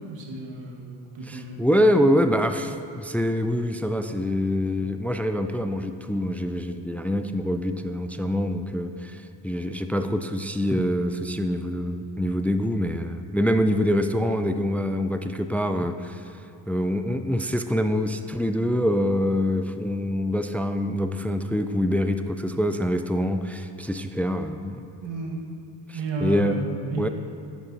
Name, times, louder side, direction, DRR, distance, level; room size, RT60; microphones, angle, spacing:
voice 1, 0.0-1.7 2.0-2.1 25.0-25.4 25.9-27.1, right 2 dB, 65° right, 0 dB, 1.7 m, -32 dB
voice 2, 1.2-16.2 16.7-24.8 25.9-26.6 27.0-27.1, equal, 5° left, 8 dB, 0.4 m, -25 dB
10.5 x 9.0 x 2.7 m, 2.8 s
supercardioid pair, 50°, 48 cm